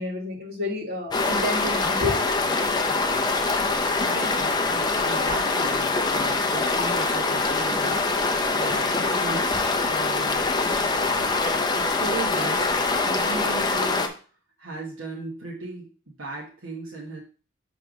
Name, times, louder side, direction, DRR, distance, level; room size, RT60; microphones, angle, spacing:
voice 1, 0.0-2.2, left 2 dB, 45° right, -2 dB, 1.8 m, -29 dB
sound 1, 1.1-14.1, left 3 dB, 20° left, 0.5 m, -24 dB
voice 2, 4.0-10.8 11.2-12.7 13.1-14.1 14.6-17.2, right 3 dB, 65° right, -3 dB, 1.2 m, -37 dB
6.2 x 3.3 x 5.1 m, 0.38 s
head